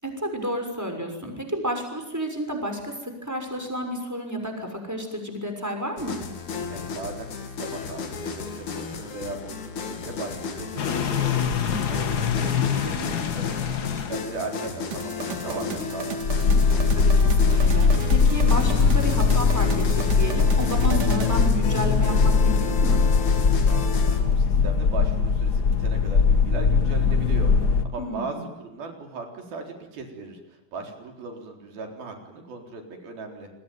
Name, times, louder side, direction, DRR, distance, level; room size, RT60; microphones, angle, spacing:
voice 1, 0.0-6.2 11.6-12.2 16.7-23.0 28.0-28.4, equal, 5° right, 4 dB, 5.9 m, -31 dB
sound 1, 6.0-24.2, left 4 dB, 55° left, 3.8 m, -33 dB
voice 2, 6.7-11.6 11.9-16.3 23.6-33.5, right 3 dB, 75° right, 3 dB, 5.9 m, -38 dB
sound 2, 10.8-14.2 16.2-27.8, left 5 dB, 80° left, 0.8 m, -21 dB
sound 3, 14.9-21.4, right 7 dB, 55° right, 3.4 m, -36 dB
28.5 x 22.0 x 9.5 m, 0.95 s
omnidirectional pair, 4.3 m